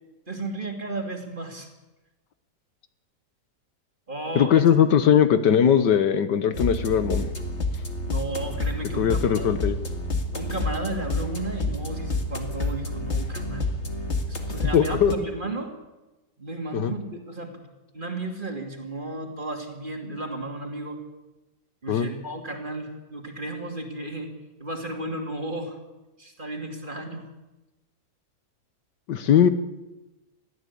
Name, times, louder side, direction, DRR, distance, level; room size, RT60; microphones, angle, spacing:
voice 1, 0.3-1.7 4.1-4.6 8.0-9.5 10.3-13.7 14.3-15.7 16.4-17.7 17.9-21.0 21.8-24.3 24.6-25.8 26.2-27.2, right 2 dB, 25° right, 3 dB, 2.9 m, -34 dB
voice 2, 4.3-7.3 9.0-9.8 14.7-15.1 16.7-16.9 21.9-22.1 29.1-29.5, left 8 dB, 75° left, 11 dB, 1.7 m, -20 dB
sound 1, 6.5-15.1, left 2 dB, 40° left, 2.3 m, -29 dB
22.0 x 15.0 x 8.5 m, 1.0 s
omnidirectional pair, 1.9 m